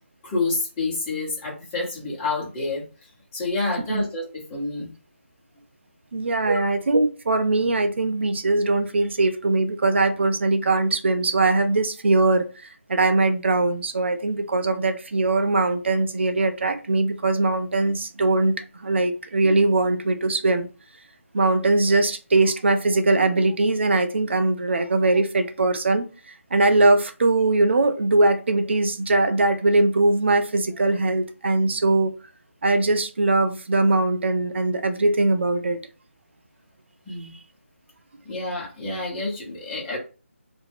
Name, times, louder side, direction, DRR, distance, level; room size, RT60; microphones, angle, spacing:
voice 1, 0.2-2.9 3.3-4.9 6.5-6.6 37.1-37.3 38.2-40.0, left 2 dB, 15° left, 0.9 m, -28 dB
voice 2, 6.1-20.7 21.3-32.1 32.6-35.8, right 2 dB, 55° right, 0.5 m, -21 dB
2.4 x 2.1 x 3.3 m
figure-of-eight pair, 160°, 7 cm